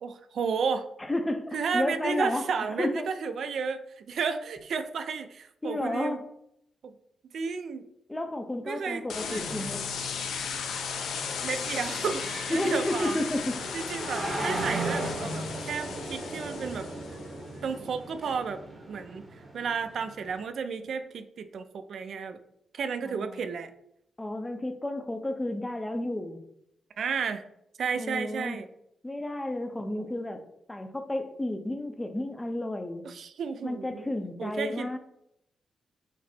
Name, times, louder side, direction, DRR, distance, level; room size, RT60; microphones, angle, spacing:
voice 1, 0.0-0.9 1.5-6.2 6.8-6.9 7.3-7.9 8.7-9.5 11.4-13.2 13.7-16.9 17.6-18.6 18.9-19.2 19.5-22.4 22.7-23.7 27.0-27.4 27.8-28.7 30.0-30.2 33.0-34.1 34.4-34.9, right 5 dB, 60° right, 9 dB, 0.4 m, -32 dB
voice 2, 1.0-2.4 2.8-3.1 5.6-6.2 8.1-9.8 12.5-13.6 23.0-23.4 24.2-26.4 28.0-28.6 29.0-30.4 30.7-33.1 33.6-35.0, left 1 dB, 10° left, 6 dB, 0.5 m, -32 dB
sound 1, 9.1-17.3, left 6 dB, 85° left, 0.6 m, -36 dB
sound 2, 9.7-20.4, right 2 dB, 25° right, 1.0 m, -37 dB
6.0 x 2.0 x 4.2 m, 0.76 s
cardioid pair, 125°, 0 cm